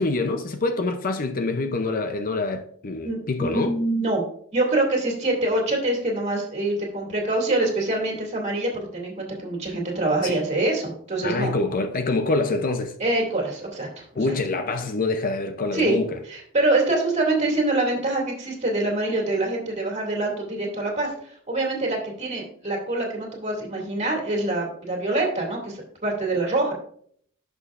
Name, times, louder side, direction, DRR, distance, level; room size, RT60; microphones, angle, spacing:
voice 1, 0.0-3.7 10.2-10.4 11.2-12.9 14.1-16.2, left 3 dB, 40° left, 0.6 m, -25 dB
voice 2, 3.0-4.2 4.5-11.5 13.0-14.3 15.7-16.0 16.3-21.1 21.5-26.7, right 2 dB, 30° right, 2.4 m, -25 dB
11.0 x 6.1 x 2.5 m
head